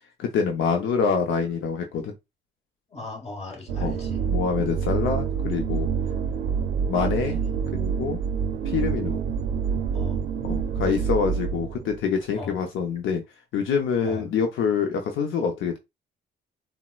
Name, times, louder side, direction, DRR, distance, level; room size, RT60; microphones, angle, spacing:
voice 1, 0.2-2.1 3.8-3.9 4.3-5.9 6.9-7.4 7.7-8.2 8.7-9.2 10.5-13.2 13.5-15.8, left 6 dB, 80° left, 0.6 m, -26 dB
voice 2, 2.9-4.2 6.9-7.4 9.9-10.2 12.3-12.5 14.0-14.2, left 3 dB, 30° left, 1.3 m, -37 dB
sound 1, 3.7-12.0, right 7 dB, 85° right, 0.5 m, -27 dB
4.0 x 2.1 x 2.3 m
cardioid pair, 90°, 20 cm